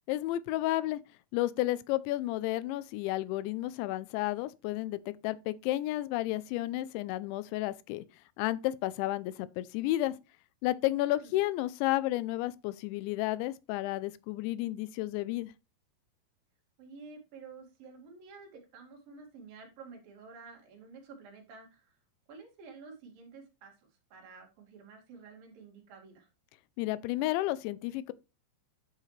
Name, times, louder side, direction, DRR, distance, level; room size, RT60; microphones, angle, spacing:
voice 1, 0.1-1.0 1.3-8.0 8.4-10.1 10.6-15.5 26.8-28.1, left 16 dB, 90° left, 2.9 m, -32 dB
voice 2, 10.9-11.4 16.8-21.9 22.3-26.3, right 4 dB, 55° right, 3.8 m, -51 dB
10.5 x 6.4 x 3.2 m
omnidirectional pair, 5.2 m